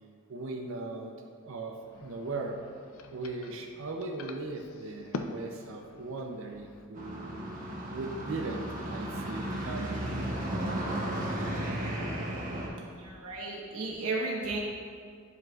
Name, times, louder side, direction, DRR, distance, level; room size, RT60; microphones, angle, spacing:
voice 1, 0.3-1.1 1.4-2.6 3.1-7.4 7.9-10.0, right 3 dB, 60° right, 2 dB, 0.6 m, -38 dB
sound 1, 1.8-6.9, left 3 dB, 70° left, 0.4 m, -44 dB
sound 2, 7.0-12.7, right 1 dB, 40° right, 1.1 m, -34 dB
voice 2, 12.9-14.6, right 3 dB, 90° right, -3 dB, 1.1 m, -34 dB
11.0 x 5.0 x 2.4 m, 2.2 s
head